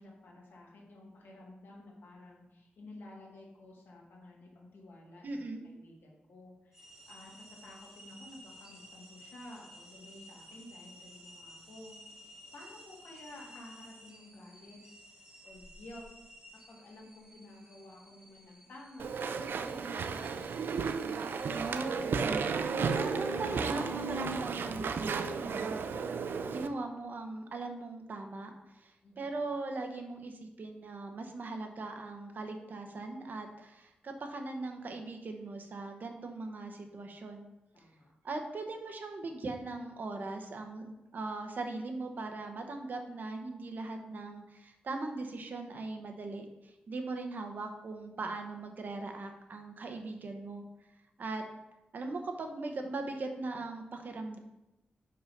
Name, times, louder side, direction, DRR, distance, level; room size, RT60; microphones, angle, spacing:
voice 1, 0.0-14.8 15.4-16.1 16.7-20.0 29.0-29.3 37.7-38.1, left 1 dB, 80° left, -1 dB, 1.8 m, -52 dB
voice 2, 5.2-5.6 21.5-26.0 26.5-37.5 38.2-50.6 51.2-51.4 51.9-54.4, right 3 dB, 55° right, 4 dB, 1.0 m, -40 dB
sound 1, 6.7-22.0, equal, 15° right, 1.4 m, -55 dB
Walk footsteps / Chatter / Squeak, 19.0-26.7, right 5 dB, 75° right, 0.4 m, -33 dB
5.9 x 5.4 x 5.3 m, 0.94 s
wide cardioid pair, 145°, 4 cm